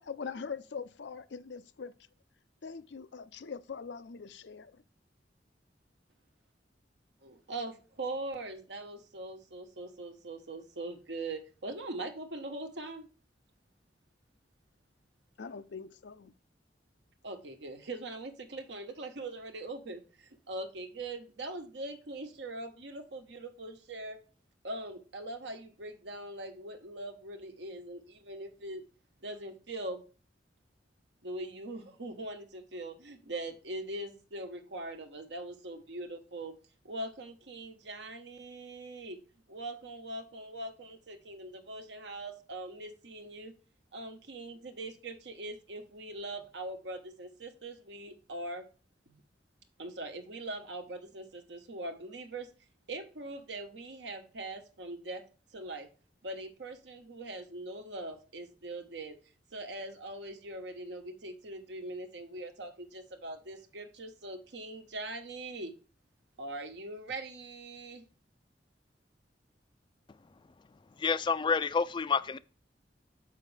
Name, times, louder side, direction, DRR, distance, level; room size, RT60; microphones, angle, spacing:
voice 1, 0.0-1.9 2.6-4.8 15.4-16.3, left 5 dB, 80° left, 0.5 m, -42 dB
voice 2, 7.2-13.1 17.2-24.2 24.6-28.8 29.2-30.0 31.2-36.5 36.8-39.2 39.5-43.5 43.9-48.6 49.1-49.2 49.8-52.5 52.9-55.2 55.5-55.9 56.2-59.2 59.5-65.7 66.4-68.0, right 2 dB, 75° right, 1.1 m, -41 dB
voice 3, 71.0-72.4, left 5 dB, 25° left, 0.3 m, -28 dB
7.2 x 5.7 x 3.3 m
head